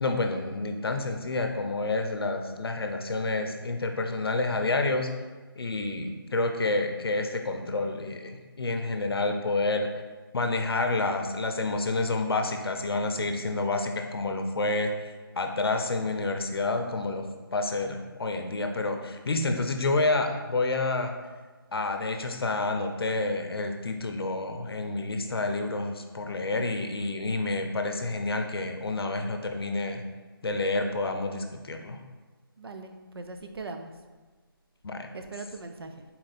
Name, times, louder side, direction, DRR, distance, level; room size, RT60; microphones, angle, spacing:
voice 1, 0.0-5.1 5.6-9.9 10.3-21.1 21.7-30.0 30.4-32.0 34.8-35.1, left 2 dB, 80° left, 5 dB, 0.6 m, -29 dB
voice 2, 32.6-33.9 35.1-36.0, right 3 dB, 85° right, 6 dB, 0.5 m, -40 dB
4.1 x 2.5 x 4.0 m, 1.3 s
figure-of-eight pair, 175°, 12 cm